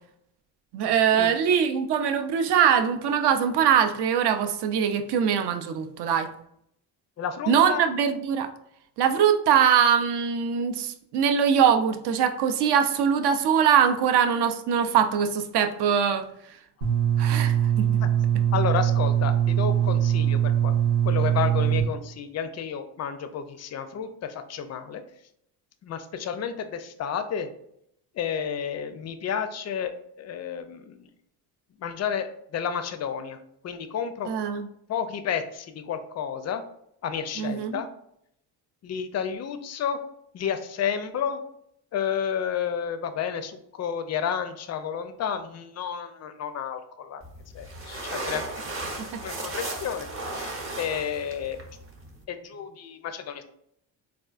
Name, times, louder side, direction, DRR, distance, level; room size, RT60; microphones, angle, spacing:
voice 1, 0.7-6.3 7.5-8.5 9.0-16.3 17.2-17.9 34.3-34.7 37.4-37.8, right 8 dB, 55° right, 7 dB, 0.5 m, -22 dB
voice 2, 7.2-7.8 18.0-18.1 18.5-20.7 21.0-25.0 25.8-27.5 28.1-29.9 30.2-31.1 31.8-33.4 33.6-34.3 34.9-36.6 37.0-37.9 38.8-40.0 40.3-41.4 41.9-47.2 47.5-48.4 49.2-51.6 52.3-53.4, left 7 dB, 35° left, 10 dB, 0.4 m, -31 dB
sound 1, 16.8-21.8, right 10 dB, 80° right, 0.9 m, -22 dB
sound 2, 47.2-52.2, right 2 dB, 25° right, 0.8 m, -36 dB
3.5 x 2.4 x 2.4 m, 0.74 s
supercardioid pair, 75°, 48 cm